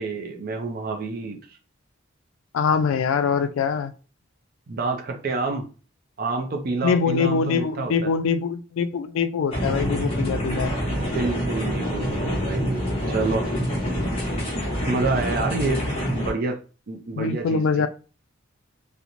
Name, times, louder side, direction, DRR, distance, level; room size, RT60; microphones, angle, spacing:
voice 1, 0.0-1.6 4.7-5.7 6.2-8.1 10.9-13.5 14.9-15.9 16.1-16.6 16.9-17.9, right 3 dB, 45° right, 0.4 m, -28 dB
voice 2, 2.5-3.9 6.8-10.7 17.2-17.9, left 5 dB, 75° left, 0.3 m, -23 dB
sound 1, 9.5-16.3, equal, 30° left, 0.8 m, -26 dB
2.9 x 2.1 x 2.5 m
head